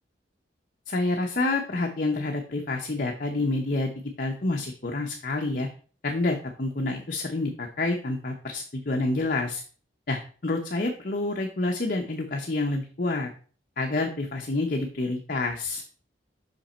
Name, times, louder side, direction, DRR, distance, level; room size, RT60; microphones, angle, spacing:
voice 1, 0.9-3.9 4.2-5.7 6.0-9.6 10.1-13.3 13.8-15.8, left 2 dB, 50° left, 2 dB, 0.8 m, -28 dB
6.0 x 5.4 x 4.3 m, 0.41 s
head